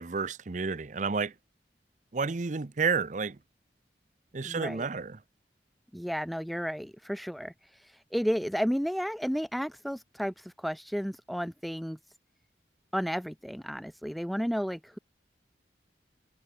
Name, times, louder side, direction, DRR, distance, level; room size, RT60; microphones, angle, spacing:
voice 1, 0.0-1.3 2.1-3.4 4.3-5.2, right 4 dB, 45° right, 0.6 m, -30 dB
voice 2, 4.4-4.9 5.9-7.5 8.1-12.0 12.9-15.0, equal, ahead, 0.8 m, -32 dB
head